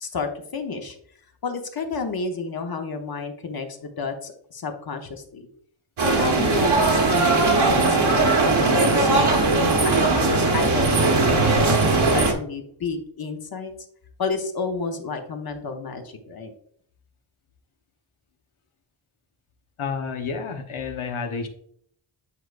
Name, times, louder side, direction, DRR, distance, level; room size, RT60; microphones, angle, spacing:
voice 1, 0.0-1.0 1.4-5.5 6.0-9.3 9.6-13.7 14.2-16.5, left 4 dB, 50° left, 5 dB, 0.9 m, -31 dB
sound 1, 6.0-12.3, right 3 dB, 75° right, 1.3 m, -19 dB
voice 2, 19.8-21.5, left 5 dB, 85° left, 5 dB, 1.1 m, -30 dB
8.7 x 4.7 x 2.5 m, 0.65 s
wide cardioid pair, 145°, 48 cm